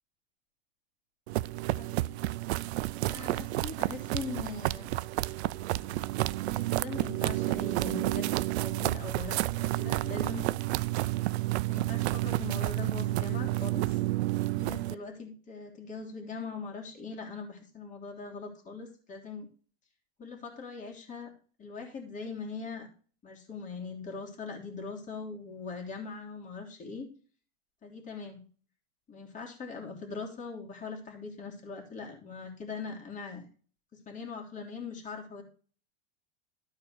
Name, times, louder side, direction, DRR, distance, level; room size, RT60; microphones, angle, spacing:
sound 1, 1.3-15.0, right 17 dB, 75° right, 0.6 m, -30 dB
voice 1, 3.1-4.9 6.5-8.3 8.5-10.4 11.7-14.0 14.6-19.5 20.2-21.3 21.6-22.9 23.2-27.1 27.8-28.4 29.1-33.5 33.9-35.4, left 4 dB, 20° left, 1 dB, 3.3 m, -41 dB
12.5 x 4.8 x 6.6 m, 0.40 s
supercardioid pair, 135°, 33 cm